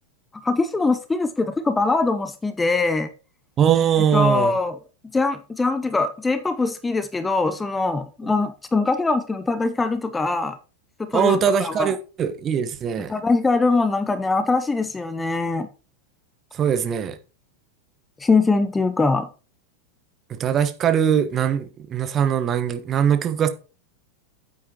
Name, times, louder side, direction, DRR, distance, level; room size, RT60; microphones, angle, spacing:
voice 1, 0.4-3.1 4.1-4.8 5.1-10.6 11.0-11.9 13.1-15.7 18.2-19.3, left 3 dB, 10° left, 0.7 m, -22 dB
voice 2, 3.6-4.5 11.1-13.1 16.5-17.2 20.3-23.5, right 8 dB, 30° right, 1.1 m, -21 dB
9.7 x 8.5 x 2.9 m
figure-of-eight pair, 90°, 0 cm